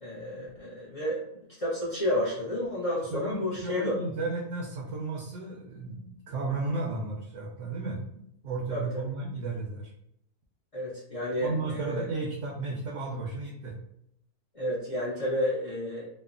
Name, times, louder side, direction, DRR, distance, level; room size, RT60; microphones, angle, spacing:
voice 1, 0.0-3.9 8.7-9.1 10.7-12.1 14.5-16.0, left 1 dB, 70° left, -7 dB, 0.3 m, -31 dB
voice 2, 3.1-9.9 11.4-13.8, right 3 dB, 65° right, -1 dB, 0.8 m, -34 dB
3.2 x 2.0 x 2.4 m, 0.77 s
omnidirectional pair, 1.6 m